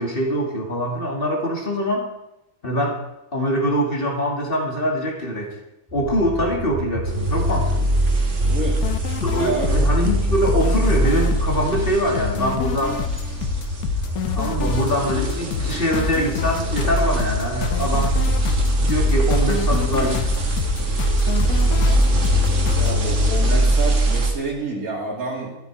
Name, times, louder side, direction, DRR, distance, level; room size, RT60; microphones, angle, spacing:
voice 1, 0.0-2.1 2.6-3.0 3.3-5.6 5.9-7.9 9.2-13.0 14.3-18.2 18.8-20.3 23.4-23.7, equal, 40° left, 1 dB, 2.3 m, -23 dB
sound 1, 5.9-22.6, equal, 15° right, 2.0 m, -32 dB
sound 2, 7.0-24.3, right 1 dB, 55° right, 1.9 m, -22 dB
voice 2, 8.4-9.0 9.3-9.8 22.8-25.6, right 3 dB, 80° right, -2 dB, 3.1 m, -28 dB
sound 3, 8.8-22.9, left 7 dB, 85° left, 1.2 m, -28 dB
13.5 x 12.0 x 4.6 m, 0.90 s
omnidirectional pair, 1.5 m